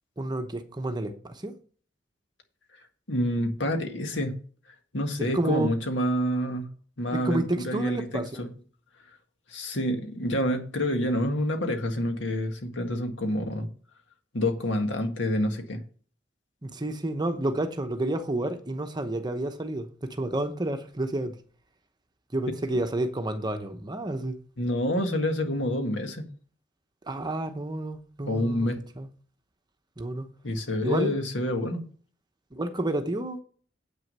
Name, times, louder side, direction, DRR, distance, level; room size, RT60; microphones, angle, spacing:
voice 1, 0.2-1.6 5.3-5.7 7.1-8.4 16.6-21.4 22.3-24.4 27.0-28.7 29.0-29.1 30.0-30.3 30.8-31.1 32.5-33.4, right 1 dB, 25° right, 0.9 m, -30 dB
voice 2, 3.1-4.4 4.9-6.7 7.0-8.5 9.5-13.7 14.3-15.8 24.6-26.3 28.3-28.8 30.4-31.8, left 1 dB, 80° left, 1.8 m, -28 dB
8.3 x 6.4 x 5.4 m
head